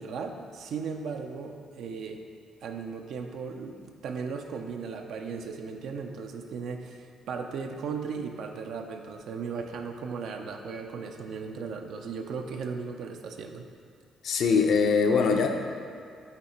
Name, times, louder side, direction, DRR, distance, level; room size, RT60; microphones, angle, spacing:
voice 1, 0.0-2.2 2.6-13.7, right 5 dB, 75° right, 4 dB, 0.5 m, -36 dB
voice 2, 14.2-15.5, left 5 dB, 70° left, 3 dB, 0.6 m, -22 dB
8.2 x 3.2 x 4.3 m, 2.4 s
cardioid pair, 90°, 0 cm